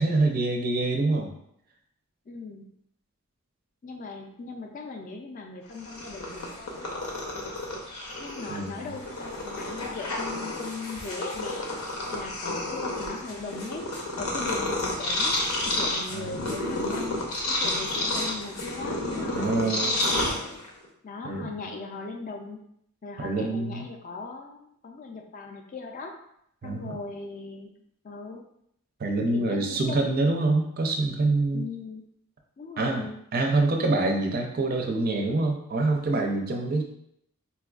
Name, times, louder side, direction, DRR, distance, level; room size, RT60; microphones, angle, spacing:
voice 1, 0.0-1.3 8.5-8.9 16.1-16.5 19.3-20.0 21.2-21.5 23.2-23.9 26.6-26.9 29.0-31.7 32.8-36.8, right 2 dB, 40° right, 3 dB, 0.4 m, -26 dB
voice 2, 2.3-2.7 3.8-7.6 8.2-15.4 15.7-20.6 21.0-22.6 23.0-26.1 26.6-27.7 28.0-28.4 29.3-30.5 31.5-32.0 32.6-33.2, left 3 dB, 35° left, 3 dB, 0.3 m, -39 dB
Purr, 5.7-20.9, left 1 dB, 80° left, 0.7 m, -30 dB
4.1 x 2.3 x 2.3 m, 0.73 s
head